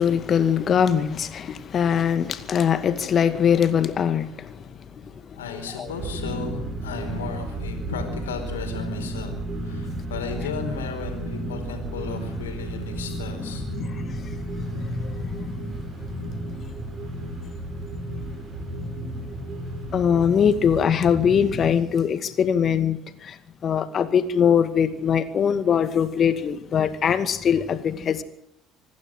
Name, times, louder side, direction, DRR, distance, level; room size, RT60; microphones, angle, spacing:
voice 1, 0.0-5.9 13.4-15.8 16.1-16.2 19.9-28.2, left 7 dB, 45° left, 2.2 m, -23 dB
voice 2, 5.3-9.3 9.6-13.6, left 5 dB, 90° left, 4.6 m, -34 dB
sound 1, 5.9-21.8, right 1 dB, 45° right, 7.2 m, -33 dB
26.0 x 12.0 x 9.2 m
hypercardioid pair, 65°, 0 cm